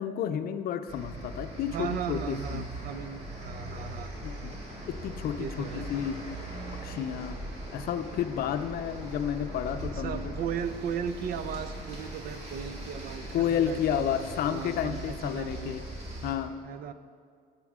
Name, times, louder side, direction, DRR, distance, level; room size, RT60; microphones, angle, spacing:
voice 1, 0.0-2.6 4.2-4.6 4.9-6.4 6.7-7.4 7.7-10.3 13.3-15.8 16.2-16.5, left 9 dB, 65° left, 10 dB, 0.5 m, -31 dB
sound 1, 0.9-16.3, right 1 dB, 40° right, 2.2 m, -40 dB
voice 2, 1.7-4.1 5.4-5.9 9.9-15.8 16.6-16.9, right 8 dB, 60° right, 12 dB, 0.5 m, -37 dB
9.4 x 8.1 x 3.7 m, 2.1 s
cardioid pair, 110°, 17 cm